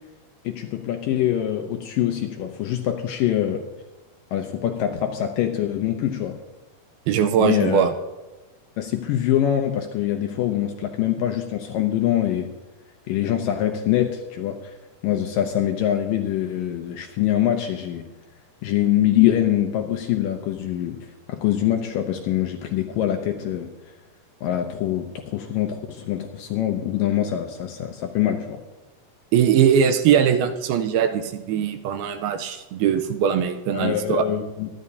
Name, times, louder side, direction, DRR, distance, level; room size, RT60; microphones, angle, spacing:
voice 1, 0.4-3.7 4.3-6.4 7.4-7.8 8.8-12.5 13.1-14.7 15.0-18.1 18.6-23.7 24.4-28.6 33.7-34.7, left 11 dB, 75° left, 4 dB, 2.1 m, -24 dB
voice 2, 7.1-7.9 29.3-34.2, right 8 dB, 80° right, 7 dB, 2.5 m, -20 dB
23.5 x 11.0 x 2.8 m, 1.1 s
omnidirectional pair, 4.6 m